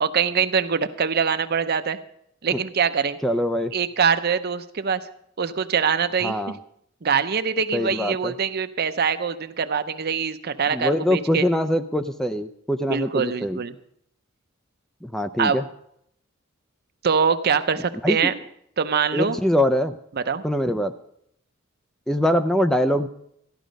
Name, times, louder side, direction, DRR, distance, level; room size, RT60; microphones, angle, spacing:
voice 1, 0.0-2.0 2.4-3.2 3.7-5.0 5.4-6.3 7.0-11.5 12.9-13.7 15.4-15.6 17.0-18.3 18.8-19.4 20.3-20.4, right 6 dB, 50° right, 11 dB, 0.7 m, -23 dB
voice 2, 3.2-3.7 6.2-6.6 7.7-8.3 10.7-13.6 15.0-15.6 18.0-18.3 19.1-19.9 20.4-20.9 22.1-23.1, equal, ahead, 8 dB, 0.4 m, -23 dB
14.0 x 11.5 x 5.2 m, 0.73 s
head